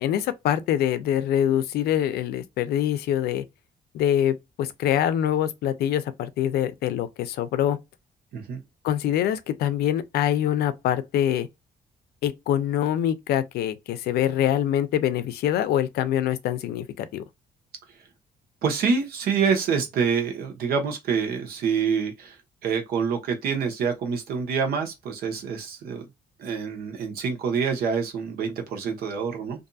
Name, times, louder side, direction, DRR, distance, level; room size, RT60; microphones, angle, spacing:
voice 1, 0.0-3.4 3.9-7.8 8.8-11.5 12.2-17.2, left 10 dB, 85° left, 0.5 m, -24 dB
voice 2, 18.6-26.0 26.4-29.7, right 6 dB, 75° right, 0.9 m, -26 dB
2.6 x 2.6 x 2.2 m
cardioid pair, 155°, 16 cm